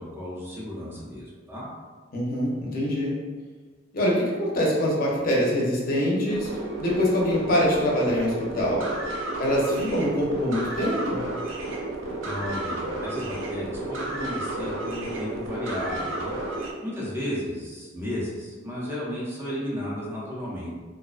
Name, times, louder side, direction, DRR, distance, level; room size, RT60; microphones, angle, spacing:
voice 1, 0.0-1.6 12.2-16.3 16.8-20.7, left 1 dB, 10° right, -7 dB, 0.5 m, -33 dB
voice 2, 2.1-3.2 3.9-6.5 6.8-8.9 9.4-11.3, equal, 50° left, -4 dB, 0.5 m, -24 dB
sound 1, 6.3-16.7, right 2 dB, 80° right, 0.4 m, -32 dB
2.4 x 2.2 x 2.3 m, 1.4 s
head